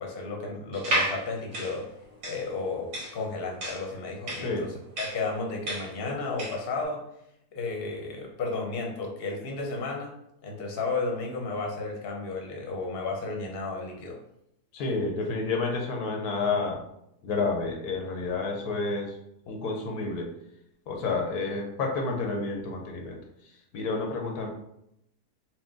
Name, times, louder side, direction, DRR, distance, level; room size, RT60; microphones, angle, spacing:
voice 1, 0.0-1.9 2.2-4.7 5.0-7.0 7.5-10.1 10.4-14.2, left 3 dB, 45° left, 0 dB, 0.9 m, -33 dB
sound 1, 0.7-6.7, right 1 dB, 65° right, 1.6 m, -32 dB
voice 2, 14.7-16.8 17.2-19.1 19.5-20.3 20.9-23.2 23.7-24.5, left 3 dB, 80° left, 1 dB, 1.2 m, -30 dB
4.3 x 2.2 x 3.6 m, 0.80 s
omnidirectional pair, 1.7 m